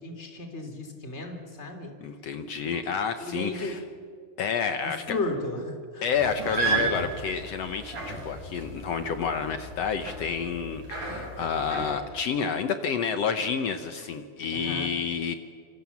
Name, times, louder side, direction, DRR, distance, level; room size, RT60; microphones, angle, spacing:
voice 1, 0.0-1.9 3.3-3.7 4.8-6.1 14.5-14.9, left 2 dB, 20° left, 4 dB, 3.1 m, -34 dB
voice 2, 2.0-3.8 4.4-5.2 6.0-15.3, left 6 dB, 75° left, 9 dB, 1.5 m, -29 dB
sound 1, 6.1-11.9, right 4 dB, 55° right, 7.4 m, -34 dB
27.5 x 25.0 x 7.2 m, 2.2 s
omnidirectional pair, 4.3 m